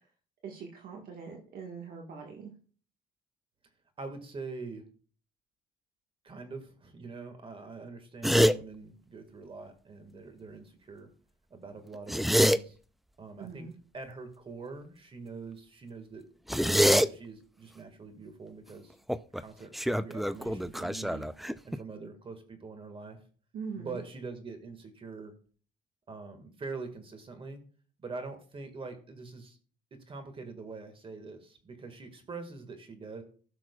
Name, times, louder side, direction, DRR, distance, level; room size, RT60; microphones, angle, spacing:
voice 1, 0.4-2.5 13.4-13.7 23.5-24.0, right 5 dB, 60° right, 0 dB, 1.6 m, -42 dB
voice 2, 4.0-4.8 6.2-11.1 11.5-12.8 13.2-13.7 13.9-16.2 16.7-19.0 19.4-21.3 21.6-23.2 23.7-25.3 26.1-27.6 28.0-29.6 29.9-33.2, right 4 dB, 30° right, 7 dB, 1.8 m, -44 dB
sound 1, 8.2-8.6 11.9-12.6 16.5-17.1 19.1-19.4 19.7-21.8, equal, ahead, 0.3 m, -25 dB
16.5 x 6.0 x 2.3 m, 0.42 s
cardioid pair, 110°, 17 cm